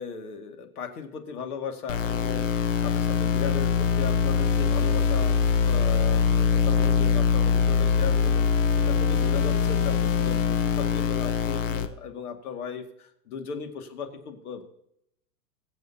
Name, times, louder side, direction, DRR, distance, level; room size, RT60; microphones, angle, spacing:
voice 1, 0.0-2.5 2.8-5.3 5.6-8.5 8.9-14.6, left 6 dB, 65° left, 5 dB, 2.1 m, -37 dB
sound 1, 1.9-11.9, left 6 dB, 50° left, 1.1 m, -23 dB
22.0 x 7.9 x 2.8 m, 0.76 s
supercardioid pair, 165°, 48 cm